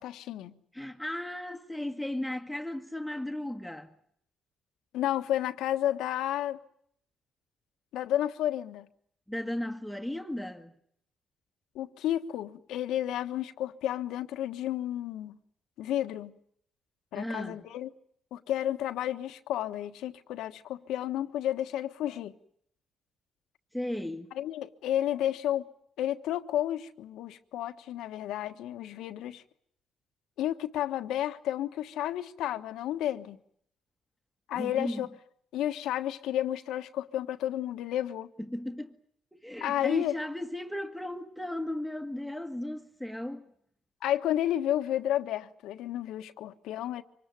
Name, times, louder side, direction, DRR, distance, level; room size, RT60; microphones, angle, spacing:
voice 1, 0.0-0.5 4.9-6.6 7.9-8.9 11.7-15.4 15.8-16.4 17.1-17.9 18.3-22.3 24.3-25.6 26.0-29.4 30.4-33.4 34.5-35.1 35.5-38.3 39.6-40.2 44.0-47.0, left 12 dB, 85° left, 1.3 m, -31 dB
voice 2, 0.7-3.9 9.3-10.7 17.1-17.6 23.7-24.3 34.5-35.1 38.4-38.9 39.3-43.5, left 1 dB, ahead, 1.6 m, -35 dB
25.0 x 20.0 x 9.2 m
cardioid pair, 90°, 0 cm